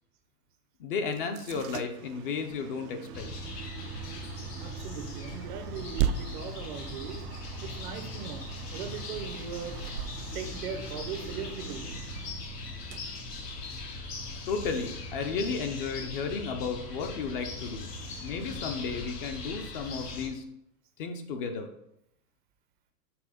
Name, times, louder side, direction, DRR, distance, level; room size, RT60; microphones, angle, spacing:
voice 1, 0.8-3.3 14.5-17.9 18.2-20.4 21.0-21.7, left 5 dB, 35° left, 6 dB, 0.6 m, -33 dB
sound 1, 1.1-14.0, right 9 dB, 80° right, 0.5 m, -39 dB
sound 2, 3.1-20.3, left 2 dB, 90° left, 1.9 m, -40 dB
voice 2, 4.6-7.2 7.6-8.4 8.7-9.8 10.3-11.8, right 6 dB, 35° right, 7 dB, 0.5 m, -39 dB
6.1 x 3.3 x 5.0 m, 0.77 s
hypercardioid pair, 150°, 46 cm